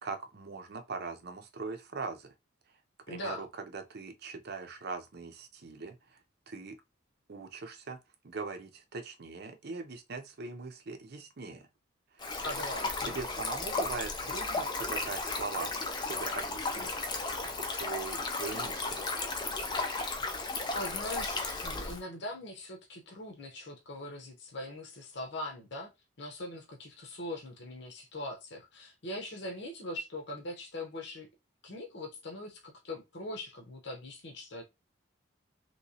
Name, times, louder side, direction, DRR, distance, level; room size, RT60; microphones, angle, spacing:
voice 1, 0.0-2.3 3.1-6.2 6.5-6.8 7.3-8.0 8.2-11.7 12.1-12.4 13.0-17.0 17.2-19.0, right 4 dB, 55° right, 0.6 m, -41 dB
voice 2, 3.1-3.5 12.3-13.2 20.7-25.9 26.2-31.3 31.6-34.6, left 1 dB, 60° left, 0.9 m, -41 dB
Stream, 12.2-22.0, left 3 dB, 25° left, 0.5 m, -34 dB
3.1 x 3.0 x 2.8 m
head